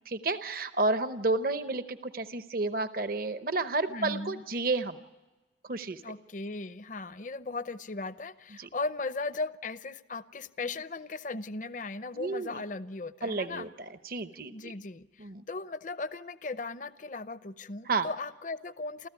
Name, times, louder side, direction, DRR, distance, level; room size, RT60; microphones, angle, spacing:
voice 1, 0.1-5.0 5.7-6.0 8.6-8.7 12.1-12.6 13.2-14.7 15.2-15.4 17.9-18.1, right 3 dB, 50° right, 10 dB, 0.9 m, -31 dB
voice 2, 3.9-4.4 6.0-13.7 14.5-19.1, left 3 dB, 45° left, 13 dB, 0.7 m, -37 dB
29.5 x 14.0 x 9.6 m, 1.2 s
head